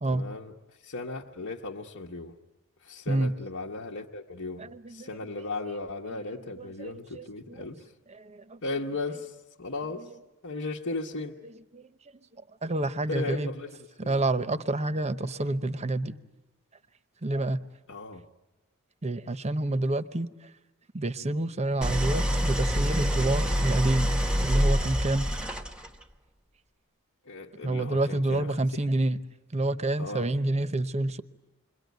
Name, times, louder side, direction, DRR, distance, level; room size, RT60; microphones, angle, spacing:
voice 1, 0.0-0.5 0.8-2.3 2.8-7.9 8.6-10.1 10.4-11.4 13.1-13.8 14.0-14.2 17.9-18.2 27.2-28.9 30.0-30.3, left 3 dB, 60° left, -1 dB, 1.2 m, -36 dB
voice 2, 4.6-5.1 6.1-6.2 6.6-7.6 8.1-8.6 10.0-10.1 11.7-11.9 12.6-13.5 14.0-16.2 17.2-17.6 19.0-20.3 20.9-24.1 24.4-25.3 27.6-29.2 29.5-31.2, right 2 dB, 30° right, 12 dB, 0.8 m, -28 dB
Idling, 21.8-26.0, equal, 5° right, 0.9 m, -26 dB
28.0 x 22.0 x 9.3 m, 1.1 s
head